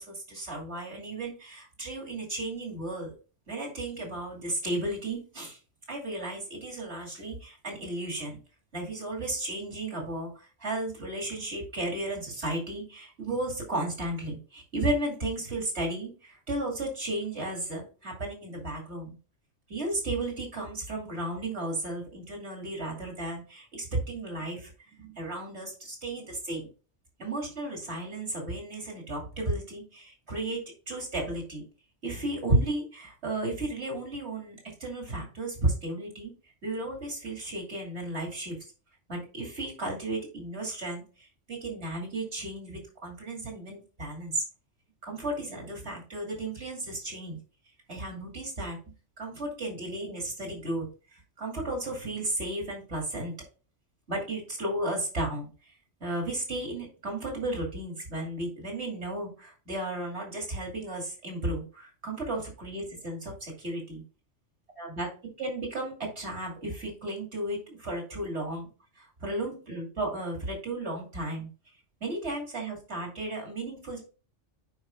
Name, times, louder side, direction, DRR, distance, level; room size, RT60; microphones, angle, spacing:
voice 1, 0.0-3.1 3.5-5.6 5.9-8.4 8.7-19.1 19.7-24.7 25.0-26.7 27.2-31.6 32.0-36.3 36.6-38.6 39.1-44.4 45.0-47.4 47.9-50.9 51.1-53.4 54.1-55.7 56.0-64.0 64.8-65.1 65.4-68.7 69.0-71.5 72.0-74.0, right 1 dB, 60° right, 0 dB, 2.8 m, -34 dB
9.5 x 4.9 x 2.4 m, 0.34 s
omnidirectional pair, 1.2 m